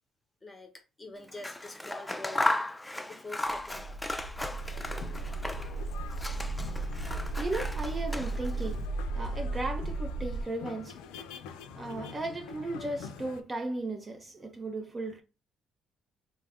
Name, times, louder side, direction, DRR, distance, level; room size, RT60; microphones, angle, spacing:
voice 1, 0.4-2.5 3.1-4.0, left 2 dB, 25° left, 1.0 m, -45 dB
Scissors, 1.3-5.8 6.1-8.7, left 1 dB, 10° left, 0.3 m, -35 dB
sound 1, 3.5-10.4, right 3 dB, 85° right, 0.4 m, -35 dB
sound 2, 4.6-13.4, left 7 dB, 90° left, 0.3 m, -46 dB
voice 2, 7.4-8.9 9.1-11.0 11.8-15.2, right 2 dB, 30° right, 0.6 m, -36 dB
3.4 x 2.0 x 3.5 m
supercardioid pair, 75°, 0 cm